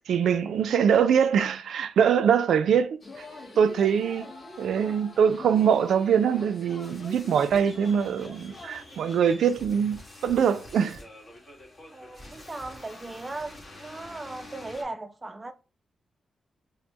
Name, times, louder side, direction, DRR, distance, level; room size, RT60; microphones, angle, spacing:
voice 1, 0.1-3.2 3.6-4.3 4.6-11.0, right 7 dB, 85° right, 0.4 m, -23 dB
Yell / Cheering, 3.0-9.1, left 3 dB, 50° left, 0.6 m, -46 dB
sound 1, 3.0-14.8, left 1 dB, 35° left, 1.5 m, -47 dB
voice 2, 11.9-15.5, right 2 dB, 25° right, 0.4 m, -38 dB
5.2 x 2.1 x 2.9 m
cardioid pair, 110°, 0 cm